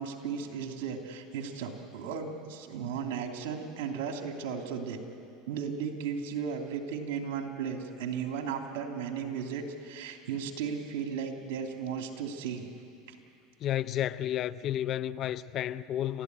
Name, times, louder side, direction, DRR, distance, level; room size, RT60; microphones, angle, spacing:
voice 1, 0.0-5.0 5.5-12.7 13.1-13.2, right 6 dB, 75° right, 2.9 m, -35 dB
voice 2, 13.6-16.2, left 11 dB, 45° left, 0.6 m, -31 dB
30.0 x 13.5 x 9.6 m
supercardioid pair, 110°, 0 cm